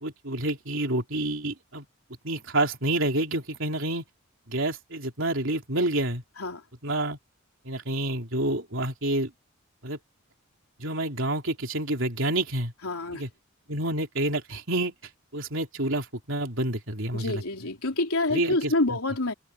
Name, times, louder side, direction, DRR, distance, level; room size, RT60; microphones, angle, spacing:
voice 1, 0.0-1.9 2.2-4.0 4.5-6.2 6.8-7.2 7.7-9.3 9.8-10.0 10.8-12.7 13.1-13.3 13.7-14.9 15.3-17.4 18.3-19.0, right 1 dB, 65° right, 3.5 m, -28 dB
voice 2, 12.8-13.2 17.1-19.3, left 2 dB, 85° left, 3.7 m, -27 dB
head